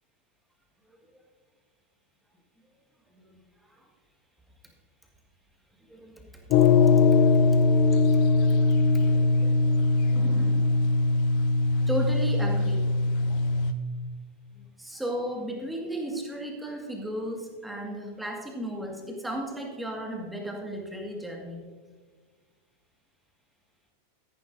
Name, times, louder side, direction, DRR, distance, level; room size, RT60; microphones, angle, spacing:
voice 1, 3.1-3.9 5.9-6.7 7.9-9.8 10.1-10.7 11.9-12.9 14.5-21.7, right 1 dB, 5° right, 1 dB, 1.8 m, -36 dB
sound 1, 6.5-13.7, left 3 dB, 45° left, 0.7 m, -21 dB
13.5 x 11.0 x 2.7 m, 1.5 s
figure-of-eight pair, 90°, 0 cm